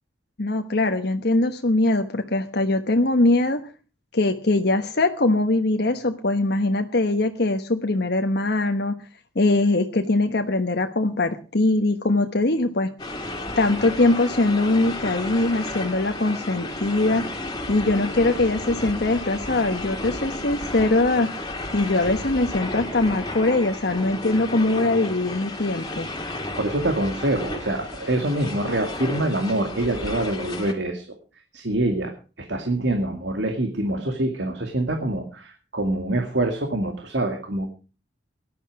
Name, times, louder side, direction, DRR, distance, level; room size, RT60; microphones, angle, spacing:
voice 1, 0.4-3.6 4.1-8.9 9.3-12.9 13.6-17.2 17.7-21.3 21.7-26.1, left 2 dB, 65° left, 5 dB, 1.2 m, -22 dB
sound 1, 13.0-30.7, left 1 dB, 25° left, 3.1 m, -33 dB
voice 2, 26.5-31.1 31.5-32.1 32.5-37.7, right 1 dB, 80° right, 5 dB, 2.3 m, -25 dB
18.0 x 12.0 x 4.8 m, 0.35 s
head